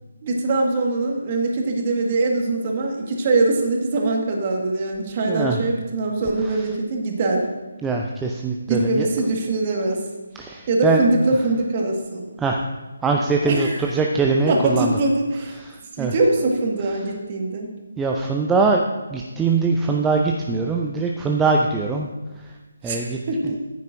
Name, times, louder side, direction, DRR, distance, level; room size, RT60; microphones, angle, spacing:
voice 1, 0.2-7.5 8.7-10.0 10.7-12.2 13.4-13.8 14.5-15.6 16.0-17.7 22.8-23.6, right 2 dB, 30° right, 1 dB, 1.8 m, -22 dB
voice 2, 5.3-5.6 6.4-6.7 7.8-9.1 10.3-11.0 12.4-12.6 13.0-15.0 15.6-16.1 18.0-18.8 19.1-22.1 22.4-22.5 22.8-23.2 23.4-23.6, right 4 dB, 5° right, 0 dB, 0.5 m, -22 dB
14.0 x 9.3 x 2.7 m, 1.2 s
figure-of-eight pair, 150°, 0 cm